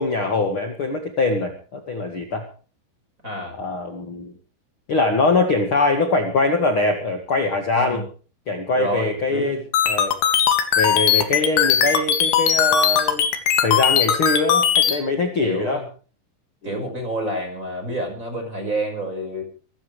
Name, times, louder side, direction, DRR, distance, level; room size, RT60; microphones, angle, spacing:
voice 1, 0.0-2.5 3.6-4.3 4.9-8.0 8.5-10.1 10.7-13.2 13.6-15.8 16.6-16.8, left 3 dB, 50° left, 5 dB, 1.6 m, -22 dB
voice 2, 3.2-3.6 7.7-8.0 8.7-9.6 15.4-15.9 16.6-19.4, right 1 dB, 15° right, 4 dB, 5.3 m, -28 dB
sound 1, 9.7-15.0, left 8 dB, 70° left, 4.3 m, -18 dB
24.5 x 15.0 x 3.3 m, 0.39 s
omnidirectional pair, 5.7 m